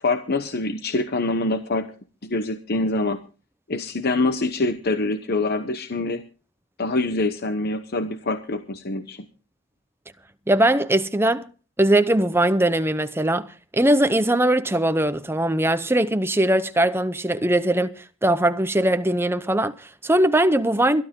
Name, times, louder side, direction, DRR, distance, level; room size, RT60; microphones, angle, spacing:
voice 1, 0.0-1.9 2.2-3.2 3.7-6.2 6.8-9.2, left 2 dB, 45° left, 0.9 m, -25 dB
voice 2, 10.5-11.5 11.8-13.5 13.7-21.0, right 1 dB, 10° right, 0.8 m, -20 dB
22.0 x 12.0 x 3.7 m
head